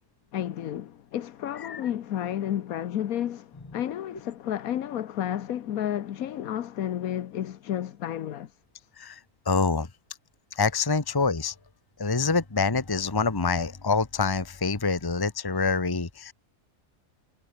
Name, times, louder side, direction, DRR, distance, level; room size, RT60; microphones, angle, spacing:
voice 1, 0.3-8.9, left 11 dB, 90° left, 1.3 m, -31 dB
voice 2, 9.5-9.9 10.5-11.5 12.0-16.3, left 4 dB, 15° left, 1.2 m, -26 dB
omnidirectional pair, 1.5 m